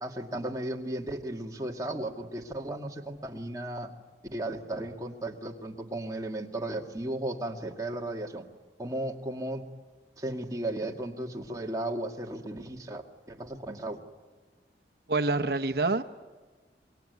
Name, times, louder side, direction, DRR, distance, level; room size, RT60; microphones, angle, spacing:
voice 1, 0.0-3.9 4.3-8.4 8.8-9.6 10.2-14.0, right 1 dB, 20° right, 2 dB, 2.1 m, -35 dB
voice 2, 15.1-16.0, right 3 dB, 60° right, 6 dB, 1.0 m, -26 dB
25.5 x 22.5 x 9.4 m, 1.4 s
head